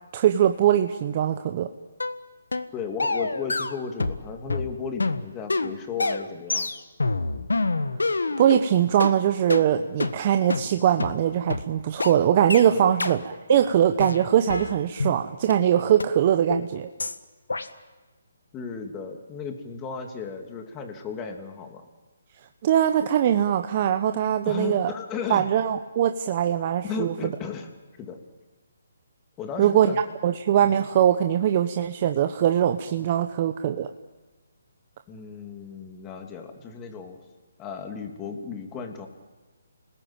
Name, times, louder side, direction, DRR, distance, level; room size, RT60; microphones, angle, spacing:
voice 1, 0.1-1.7 8.4-16.9 22.6-24.9 25.3-27.1 29.6-29.9 30.2-33.9, right 10 dB, 40° right, 7 dB, 1.0 m, -22 dB
sound 1, 2.0-2.2 2.5-2.7 3.0-4.2 4.5-8.6 9.0-9.1 9.5-9.6 10.0-10.1 10.5-10.6 11.0-11.1 11.5-11.6 12.0-12.1 12.5-12.6 13.0-13.1 13.5-13.7 14.0-15.2 15.5-15.6 16.0-16.1 16.5-16.7 17.0-17.2 17.5-17.7, left 3 dB, 85° left, 1.6 m, -27 dB
voice 2, 2.7-6.7 12.7-12.9 18.5-21.9 24.4-25.5 26.8-27.7 28.0-28.2 29.4-30.0 30.6-30.7 33.0-33.1 35.1-37.2 37.6-39.1, left 6 dB, 20° left, 4 dB, 3.0 m, -35 dB
30.0 x 20.0 x 9.0 m, 1.3 s
figure-of-eight pair, 145°, 0 cm